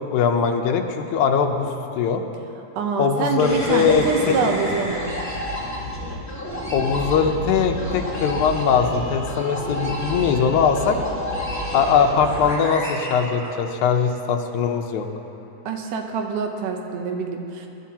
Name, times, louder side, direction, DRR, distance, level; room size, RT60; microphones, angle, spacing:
voice 1, 0.1-1.7 2.0-2.2 3.0-4.4 6.7-11.0 11.7-15.1, left 6 dB, 75° left, 4 dB, 2.1 m, -21 dB
voice 2, 2.8-5.1 15.7-17.7, right 4 dB, 80° right, 4 dB, 2.4 m, -25 dB
sound 1, 3.4-14.0, equal, 5° left, 1.7 m, -30 dB
21.0 x 11.0 x 2.9 m, 2.8 s
omnidirectional pair, 3.6 m